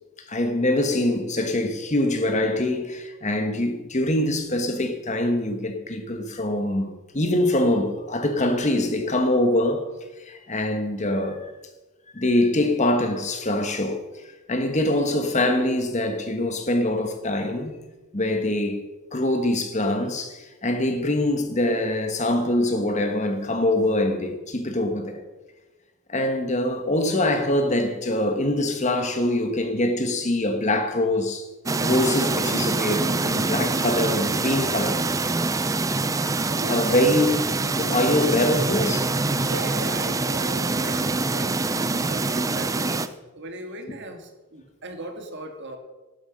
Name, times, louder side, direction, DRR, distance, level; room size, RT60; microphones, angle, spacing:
voice 1, 0.3-9.9 10.2-11.4 12.1-14.0 14.5-17.8 18.1-18.8 19.1-25.2 26.1-31.5 31.8-35.0 36.7-37.5 37.7-39.1, left 1 dB, 35° left, 1.4 m, -24 dB
sound 1, 31.7-43.1, right 3 dB, 15° right, 0.4 m, -25 dB
voice 2, 36.5-36.9 39.4-45.8, right 2 dB, 55° right, 1.9 m, -37 dB
11.5 x 9.4 x 6.3 m
head